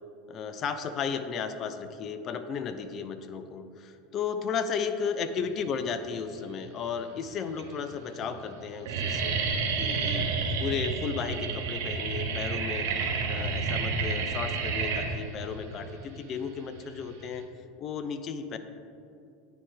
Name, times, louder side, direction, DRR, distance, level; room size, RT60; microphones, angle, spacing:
voice 1, 0.3-9.4 9.8-10.3 10.6-12.9 13.3-17.4 17.8-18.6, left 6 dB, 40° left, 9 dB, 0.4 m, -34 dB
sound 1, 6.3-6.8 7.5-7.6 7.9-8.3 8.5-17.4, right 4 dB, 65° right, 0.7 m, -30 dB
9.5 x 3.4 x 3.4 m, 2.6 s
hypercardioid pair, 80°, 0 cm